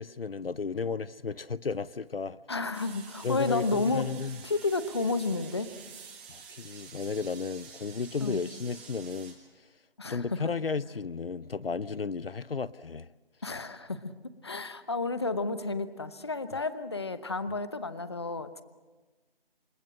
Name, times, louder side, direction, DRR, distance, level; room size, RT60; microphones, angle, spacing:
voice 1, 0.0-2.4 3.2-4.4 6.3-9.3 10.1-13.1, left 5 dB, 70° left, 0.7 m, -33 dB
voice 2, 2.5-4.1 4.4-5.7 8.2-8.5 10.0-10.4 13.4-14.1 14.4-18.6, left 3 dB, 25° left, 1.0 m, -31 dB
sound 1, 2.7-9.3, right 6 dB, 10° right, 1.8 m, -49 dB
28.5 x 21.0 x 7.7 m
figure-of-eight pair, 170°, 30 cm